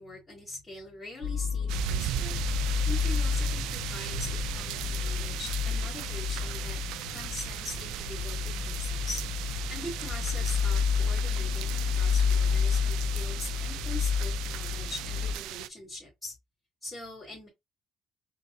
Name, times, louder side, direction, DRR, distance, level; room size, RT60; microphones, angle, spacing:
voice 1, 0.0-2.4 2.8-6.8 7.1-9.2 9.7-11.7 11.9-16.3 16.8-17.5, left 2 dB, 15° left, 3.3 m, -42 dB
sound 1, 1.2-15.3, left 6 dB, 80° left, 0.6 m, -30 dB
sound 2, 1.7-15.7, right 13 dB, 90° right, 0.3 m, -37 dB
4.8 x 3.7 x 2.6 m
cardioid pair, 120°, 0 cm